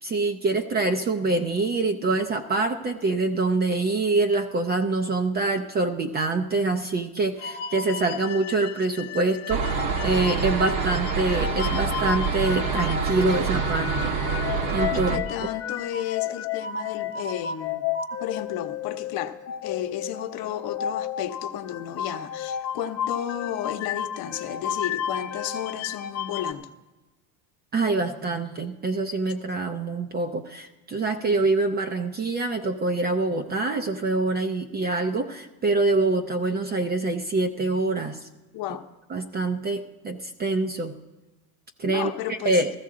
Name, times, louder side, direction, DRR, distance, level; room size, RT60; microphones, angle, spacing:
voice 1, 0.0-14.1 14.7-15.1 27.7-38.2 39.1-41.0 41.8-42.7, right 3 dB, 20° right, 0.5 m, -25 dB
sound 1, 7.4-26.5, left 8 dB, 35° left, 0.6 m, -33 dB
sound 2, 9.5-15.2, right 5 dB, 40° right, 1.0 m, -26 dB
voice 2, 14.9-17.8 18.2-26.7 38.5-38.9 41.8-42.6, left 11 dB, 50° left, 0.9 m, -33 dB
14.5 x 14.0 x 3.7 m
supercardioid pair, 125°, 48 cm